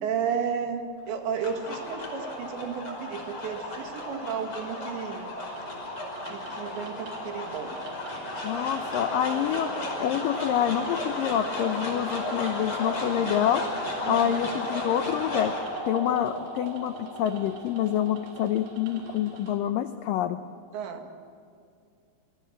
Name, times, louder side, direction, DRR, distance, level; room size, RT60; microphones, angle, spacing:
voice 1, 0.0-5.3 6.3-7.8 14.0-14.3 20.7-21.1, right 7 dB, 90° right, 4 dB, 4.4 m, -33 dB
sound 1, 1.1-19.4, left 1 dB, 30° left, 6.2 m, -34 dB
sound 2, 5.5-19.5, right 3 dB, 65° right, 5.6 m, -49 dB
voice 2, 8.4-13.7 14.1-20.4, left 10 dB, 85° left, 9 dB, 1.9 m, -27 dB
28.0 x 21.5 x 7.5 m, 2.4 s
omnidirectional pair, 5.0 m